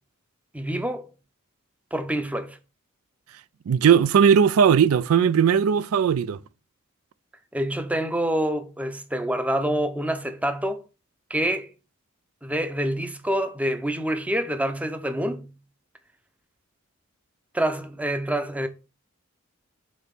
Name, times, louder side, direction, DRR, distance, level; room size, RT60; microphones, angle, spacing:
voice 1, 0.5-1.1 1.9-2.6 7.5-10.8 11.3-11.7 12.4-15.5 17.5-18.7, right 1 dB, 5° right, 0.6 m, -26 dB
voice 2, 3.7-6.4, right 7 dB, 85° right, 0.4 m, -18 dB
5.2 x 4.0 x 5.8 m
head